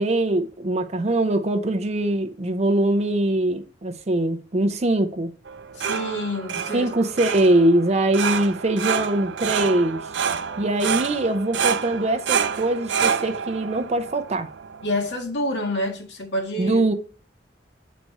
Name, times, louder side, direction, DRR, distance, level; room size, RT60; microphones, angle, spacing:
voice 1, 0.0-5.3 6.7-10.0 10.6-14.5 16.6-16.9, right 1 dB, 40° right, 0.6 m, -22 dB
sound 1, 5.5-15.2, right 7 dB, 85° right, 0.5 m, -28 dB
voice 2, 5.7-6.9 14.8-16.8, left 1 dB, 80° left, 2.0 m, -27 dB
8.3 x 4.2 x 4.6 m
head